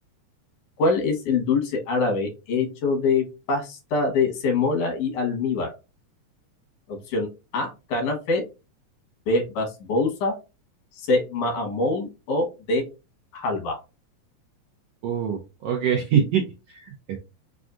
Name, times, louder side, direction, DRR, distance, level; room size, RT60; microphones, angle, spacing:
voice 1, 0.8-5.7 6.9-7.3 7.5-8.4 9.3-10.3 11.0-12.8 13.3-13.8, left 3 dB, 90° left, 2 dB, 2.8 m, -24 dB
voice 2, 15.0-16.4 16.7-17.2, right 8 dB, 75° right, 2 dB, 1.4 m, -24 dB
6.0 x 2.4 x 2.5 m, 0.28 s
omnidirectional pair, 3.4 m